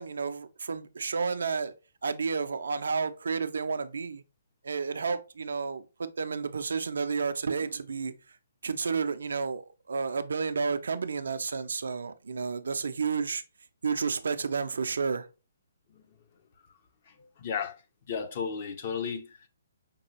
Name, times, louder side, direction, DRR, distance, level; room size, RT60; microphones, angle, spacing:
voice 1, 0.0-1.7 2.0-4.2 4.6-8.4 8.6-13.4 13.8-15.3, right 5 dB, 60° right, 0.4 m, -31 dB
voice 2, 17.1-17.8 18.1-19.5, left 6 dB, 40° left, 0.6 m, -34 dB
5.2 x 2.3 x 2.9 m
figure-of-eight pair, 130°, 0 cm